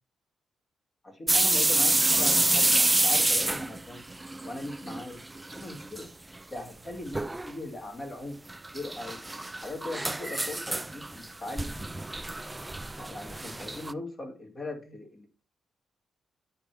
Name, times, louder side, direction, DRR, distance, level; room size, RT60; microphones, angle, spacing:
voice 1, 1.0-4.1 4.4-5.2 5.6-6.1 6.5-8.4 8.7-9.2 9.5-12.0 13.0-15.3, left 2 dB, 35° left, 2 dB, 2.6 m, -39 dB
sound 1, 1.3-5.1 5.3-6.0 6.4-6.5 7.1-7.5 8.5-13.9, right 2 dB, 15° right, 0.3 m, -27 dB
9.6 x 3.5 x 4.7 m, 0.34 s
supercardioid pair, 60°, 0 cm